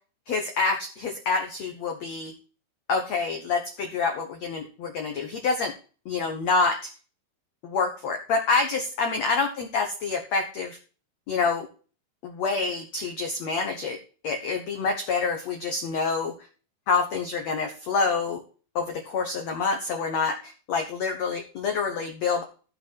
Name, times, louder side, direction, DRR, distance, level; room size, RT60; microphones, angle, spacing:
voice 1, 0.3-2.3 2.9-5.7 6.0-6.9 7.6-10.8 11.3-11.7 12.2-14.0 14.2-16.3 16.9-18.4 18.7-22.4, left 4 dB, 90° left, 3 dB, 1.5 m, -27 dB
16.0 x 5.4 x 4.6 m, 0.38 s
omnidirectional pair, 5.0 m